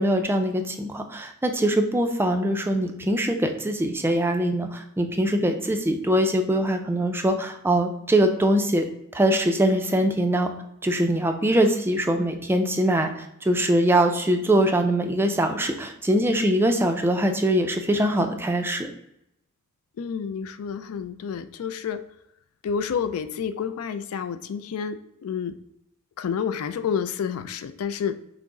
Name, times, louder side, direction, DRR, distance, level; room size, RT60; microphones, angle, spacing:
voice 1, 0.0-8.8 9.1-10.5 10.8-18.9, right 1 dB, 10° right, 5 dB, 0.3 m, -22 dB
voice 2, 20.0-22.0 22.6-25.6 26.2-28.2, left 7 dB, 70° left, 11 dB, 0.3 m, -29 dB
5.8 x 2.0 x 3.7 m, 0.79 s
head